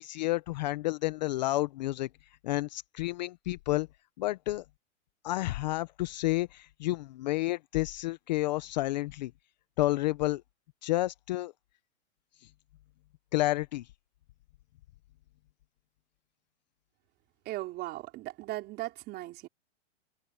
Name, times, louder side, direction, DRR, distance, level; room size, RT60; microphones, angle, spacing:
voice 1, 0.0-2.1 2.4-3.9 4.2-4.6 5.2-9.3 9.8-10.4 10.8-11.5 13.3-13.9, left 17 dB, 35° left, 0.6 m, -30 dB
voice 2, 17.4-19.5, right 17 dB, 25° right, 4.6 m, -38 dB
hypercardioid pair, 160°, 37 cm